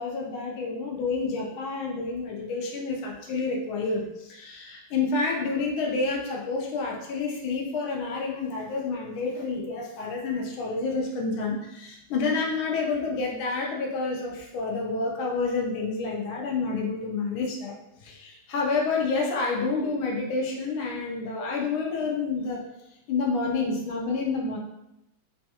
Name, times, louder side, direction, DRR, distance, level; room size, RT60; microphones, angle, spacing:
voice 1, 0.0-17.7 18.0-22.6 23.1-24.6, left 4 dB, 90° left, -1 dB, 1.5 m, -29 dB
4.0 x 2.3 x 2.8 m, 0.87 s
omnidirectional pair, 2.2 m